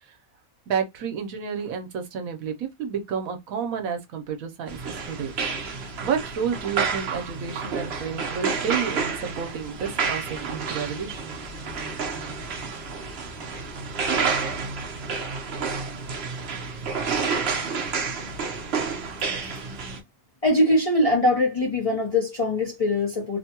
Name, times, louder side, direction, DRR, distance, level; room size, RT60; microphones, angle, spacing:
voice 1, 0.7-5.3 6.0-11.4, right 7 dB, 75° right, 1.1 m, -30 dB
sound 1, 4.7-20.0, right 5 dB, 55° right, 0.9 m, -30 dB
voice 2, 20.4-23.4, left 1 dB, 35° left, 0.7 m, -22 dB
3.0 x 2.2 x 2.8 m
omnidirectional pair, 1.5 m